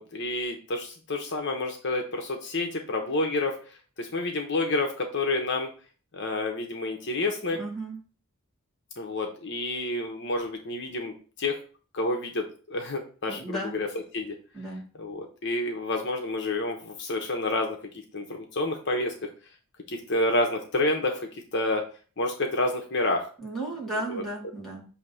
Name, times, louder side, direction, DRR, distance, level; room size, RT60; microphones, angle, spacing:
voice 1, 0.0-3.6 4.0-5.7 6.1-7.6 9.0-11.6 11.9-13.9 14.1-14.4 14.9-17.8 18.1-19.1 19.9-21.8 22.2-23.3 23.9-24.2, left 2 dB, 55° left, 3 dB, 0.9 m, -29 dB
voice 2, 7.6-8.0 13.3-13.8 14.5-14.8 23.4-24.9, right 1 dB, ahead, -5 dB, 1.9 m, -34 dB
6.4 x 2.8 x 5.6 m, 0.39 s
head